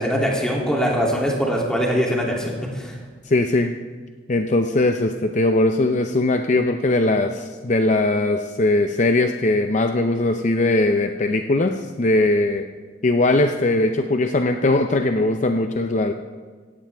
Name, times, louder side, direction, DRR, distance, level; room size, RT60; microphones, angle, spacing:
voice 1, 0.0-3.0, equal, 5° left, -2 dB, 2.8 m, -22 dB
voice 2, 3.2-3.7 4.3-12.7 13.0-16.1, left 2 dB, 40° left, 5 dB, 0.6 m, -20 dB
17.0 x 16.5 x 3.5 m, 1.5 s
head